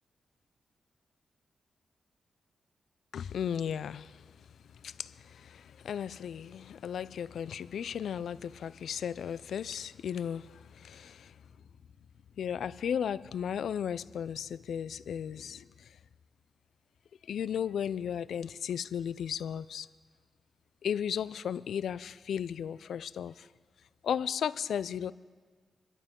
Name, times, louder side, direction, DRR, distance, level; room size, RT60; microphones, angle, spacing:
voice 1, 3.1-4.5 4.7-11.4 12.4-16.0 17.2-19.9 20.8-23.5 24.0-25.1, left 8 dB, 85° left, 0.4 m, -35 dB
27.0 x 13.5 x 3.7 m
wide cardioid pair, 145°, 0 cm